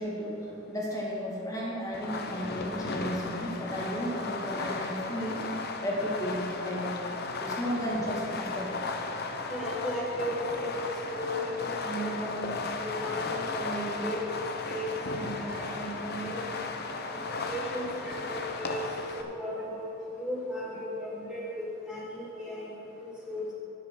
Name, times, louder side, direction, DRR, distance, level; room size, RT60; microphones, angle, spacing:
voice 1, 0.0-5.4 5.8-6.9 7.4-8.8, equal, 15° left, -4 dB, 1.9 m, -33 dB
Fireworks, 1.9-19.2, left 3 dB, 50° left, 0.7 m, -35 dB
voice 2, 9.5-11.5 11.8-12.5 12.8-14.2 14.6-16.4 17.1-18.8 19.1-19.9 20.2-21.4 21.9-23.5, equal, 5° right, -8 dB, 1.5 m, -35 dB
10.5 x 7.5 x 6.3 m, 2.9 s
head